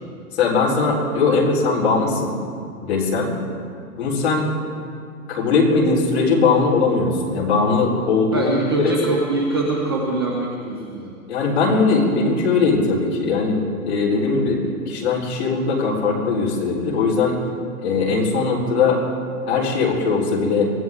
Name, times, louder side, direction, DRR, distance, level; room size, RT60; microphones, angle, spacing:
voice 1, 0.3-2.4 2.8-3.3 4.0-4.5 5.3-8.5 8.8-9.0 11.3-14.6 14.9-17.4 17.8-19.0 19.5-20.7, left 4 dB, 45° left, -4 dB, 3.9 m, -20 dB
voice 2, 8.3-11.1 14.2-14.4, right 2 dB, 15° right, -2 dB, 0.6 m, -24 dB
23.0 x 15.5 x 3.6 m, 2.2 s
hypercardioid pair, 175°, 45 cm